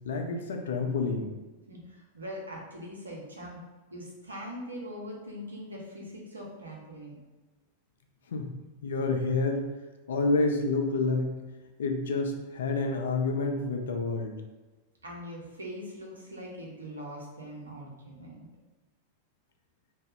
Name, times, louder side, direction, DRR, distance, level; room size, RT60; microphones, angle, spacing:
voice 1, 0.0-1.3 8.3-8.5 8.8-9.6 10.1-11.4 11.8-14.3, left 3 dB, 65° left, 4 dB, 0.4 m, -28 dB
voice 2, 1.7-3.6 3.9-7.2 15.0-18.5, equal, 75° right, -2 dB, 0.7 m, -42 dB
2.8 x 2.2 x 3.4 m, 1.2 s
figure-of-eight pair, 90°, 0 cm